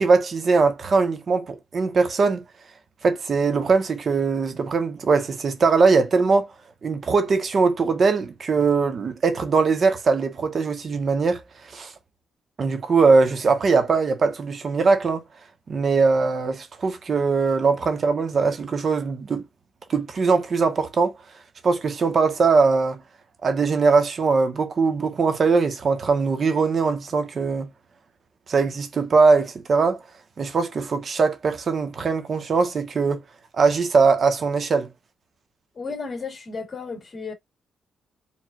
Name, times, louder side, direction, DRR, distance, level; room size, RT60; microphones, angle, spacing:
voice 1, 0.0-2.4 3.0-6.5 6.8-11.4 11.7-11.9 12.6-15.2 15.7-19.4 19.9-21.1 21.6-23.0 23.4-27.7 28.5-30.0 30.4-33.2 33.5-34.9, right 4 dB, 50° right, 1.4 m, -21 dB
voice 2, 35.8-37.3, left 4 dB, 40° left, 2.5 m, -33 dB
4.6 x 3.9 x 2.5 m
cardioid pair, 80°, 0 cm